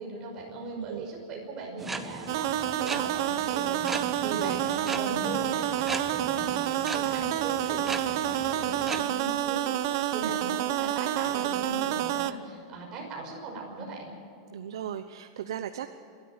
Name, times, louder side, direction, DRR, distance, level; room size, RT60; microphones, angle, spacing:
voice 1, 0.0-14.1, right 2 dB, 25° right, 0 dB, 5.9 m, -39 dB
voice 2, 0.7-1.1 4.3-4.6 5.1-5.2 10.2-10.3 14.5-15.9, right 10 dB, 85° right, 8 dB, 1.0 m, -36 dB
sound 1, 1.8-9.0, right 3 dB, 10° right, 0.9 m, -39 dB
sound 2, 2.3-12.3, right 12 dB, 50° right, 0.9 m, -29 dB
28.5 x 12.5 x 8.0 m, 2.4 s
supercardioid pair, 165°, 3 cm